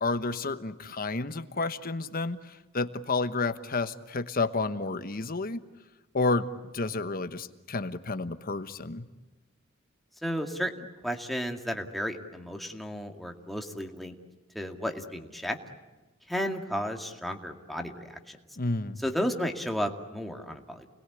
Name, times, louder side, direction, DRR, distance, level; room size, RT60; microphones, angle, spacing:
voice 1, 0.0-5.6 6.1-6.5 6.7-9.0 18.6-19.0, left 3 dB, 45° left, 11 dB, 1.2 m, -30 dB
voice 2, 10.2-14.2 14.5-15.6 16.3-18.4 19.0-20.9, equal, ahead, 3 dB, 2.2 m, -33 dB
29.0 x 21.0 x 9.9 m, 1.2 s
head